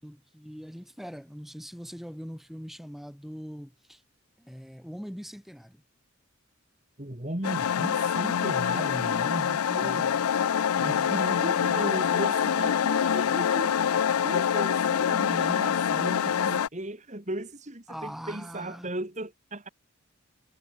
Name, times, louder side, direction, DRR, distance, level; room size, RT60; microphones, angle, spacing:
voice 1, 0.0-4.0 4.4-5.8 9.8-10.3 11.0-11.9 17.9-18.9, equal, ahead, 7.4 m, -42 dB
voice 2, 7.0-10.1 10.8-13.8 14.2-19.7, right 1 dB, 35° right, 2.4 m, -36 dB
sound 1, 7.4-16.7, left 8 dB, 85° left, 0.4 m, -25 dB
head